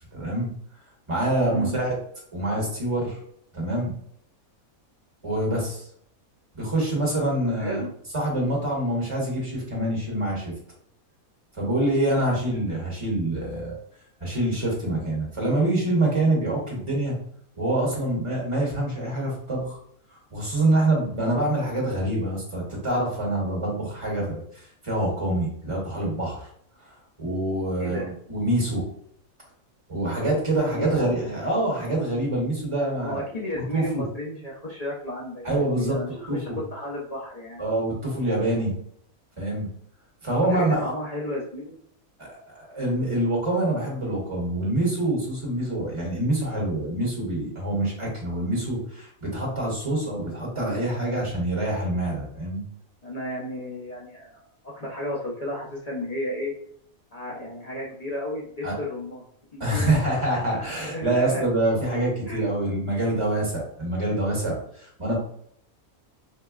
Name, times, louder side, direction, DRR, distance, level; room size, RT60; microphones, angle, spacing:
voice 1, 0.1-0.5 1.1-2.0 2.3-3.2 3.5-4.0 5.2-5.9 6.5-7.8 8.1-10.5 11.6-13.7 14.2-17.1 17.6-19.8 20.1-24.4 24.8-26.4 27.2-28.9 29.9-33.2 33.5-34.0 35.4-36.6 37.6-38.7 39.4-39.7 40.2-40.9 42.2-52.6 58.6-58.7 59.6-65.2, right 1 dB, 25° right, -4 dB, 1.1 m, -26 dB
voice 2, 1.4-1.8 7.4-7.9 27.8-28.1 30.7-31.2 33.0-37.6 40.3-41.8 53.0-56.5 57.1-59.2 59.5-60.0 60.8-61.5 62.3-62.5, left 1 dB, 50° left, -5 dB, 0.5 m, -33 dB
4.9 x 2.2 x 2.3 m, 0.66 s
omnidirectional pair, 1.5 m